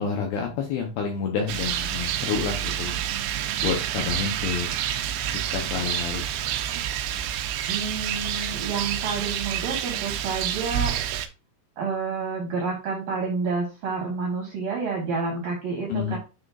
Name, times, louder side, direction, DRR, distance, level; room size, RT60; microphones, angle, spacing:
voice 1, 0.0-2.9 3.6-4.7 5.5-6.5 15.9-16.2, left 6 dB, 80° left, 2 dB, 2.5 m, -29 dB
Rain, 1.5-11.3, right 10 dB, 85° right, 2.8 m, -28 dB
voice 2, 7.7-11.0 11.8-16.2, right 4 dB, 70° right, -1 dB, 2.2 m, -29 dB
9.7 x 4.3 x 2.5 m, 0.31 s
omnidirectional pair, 5.8 m